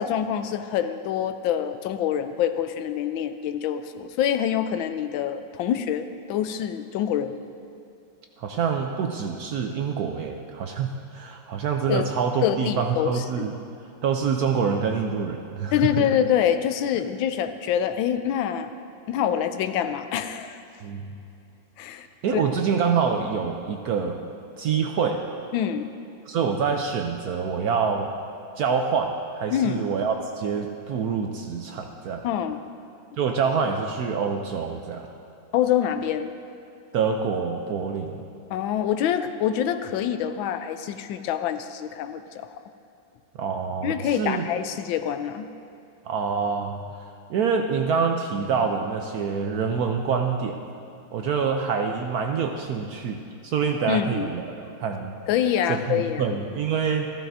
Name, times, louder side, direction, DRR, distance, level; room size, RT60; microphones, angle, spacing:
voice 1, 0.0-7.4 11.9-12.1 12.4-13.5 15.7-18.7 19.1-20.6 21.8-22.1 22.3-22.4 25.5-25.9 29.5-29.8 32.2-32.6 35.5-36.3 38.5-42.6 43.8-45.5 53.9-54.3 55.3-56.2, left 9 dB, 85° left, 10 dB, 1.3 m, -26 dB
voice 2, 8.4-13.5 14.0-16.1 20.8-21.2 22.2-24.2 24.6-25.3 26.3-28.1 28.6-32.2 33.2-35.1 36.9-38.3 43.4-44.5 46.0-46.8 47.3-50.6 51.1-55.2 55.7-57.1, right 6 dB, 70° right, 4 dB, 0.9 m, -26 dB
14.5 x 13.5 x 2.6 m, 2.7 s
omnidirectional pair, 2.1 m